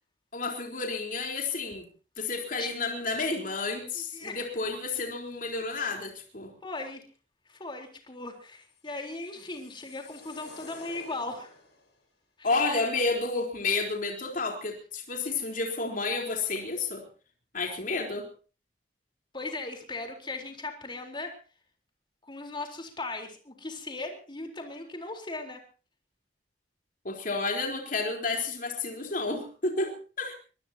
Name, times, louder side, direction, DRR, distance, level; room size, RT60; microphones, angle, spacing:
voice 1, 0.3-1.8 2.2-6.5 12.4-17.0 17.5-18.3 27.0-30.3, left 3 dB, 50° left, 2 dB, 4.0 m, -31 dB
voice 2, 3.9-4.4 6.6-7.0 7.5-11.5 12.4-12.5 19.3-21.3 22.2-25.6, left 2 dB, 30° left, 3 dB, 4.0 m, -38 dB
sound 1, 8.7-11.9, left 3 dB, 90° left, 6.8 m, -50 dB
24.0 x 20.5 x 2.9 m, 0.36 s
head